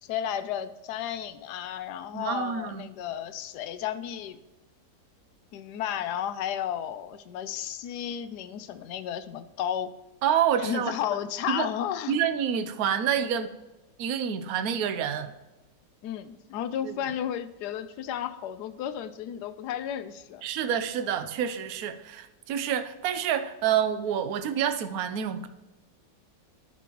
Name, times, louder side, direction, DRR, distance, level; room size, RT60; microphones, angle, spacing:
voice 1, 0.0-4.4 5.5-9.9 10.6-12.2 16.0-20.4, left 10 dB, 70° left, 1.1 m, -33 dB
voice 2, 2.1-2.9 10.2-11.0 11.5-11.7 12.1-13.5 14.0-15.3 16.8-16.9 20.4-25.5, right 8 dB, 65° right, 1.0 m, -28 dB
13.5 x 5.4 x 3.0 m
omnidirectional pair, 2.0 m